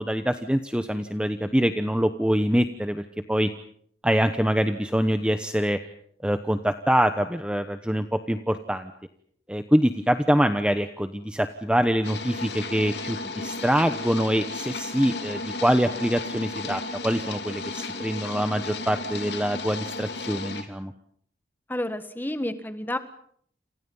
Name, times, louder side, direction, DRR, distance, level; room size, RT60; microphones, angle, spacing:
voice 1, 0.0-3.0 3.3-3.5 4.0-5.8 6.2-8.9 9.5-20.9, equal, 5° right, 8 dB, 1.0 m, -24 dB
sound 1, 12.0-20.6, left 3 dB, 75° left, 3.0 m, -34 dB
voice 2, 21.7-23.0, left 1 dB, 10° left, 10 dB, 1.6 m, -30 dB
29.0 x 28.0 x 5.6 m, 0.65 s
head